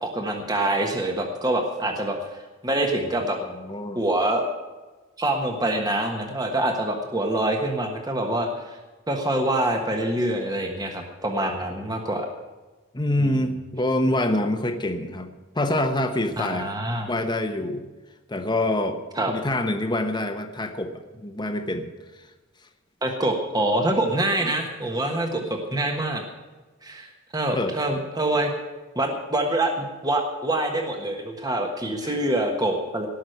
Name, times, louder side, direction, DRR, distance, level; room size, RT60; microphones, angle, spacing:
voice 1, 0.0-3.4 3.9-4.5 5.2-8.8 9.1-12.3 13.2-13.3 16.4-17.1 19.1-19.3 23.0-26.2 26.8-28.5 28.9-33.1, right 1 dB, 20° right, 3 dB, 1.3 m, -25 dB
voice 2, 3.5-4.0 12.9-15.3 15.5-16.7 17.1-17.8 18.3-19.0 19.3-21.9 22.2-22.3 24.4-24.5 27.5-27.7 32.0-32.2, left 1 dB, 20° left, 5 dB, 1.1 m, -26 dB
18.5 x 6.3 x 9.2 m, 1.2 s
head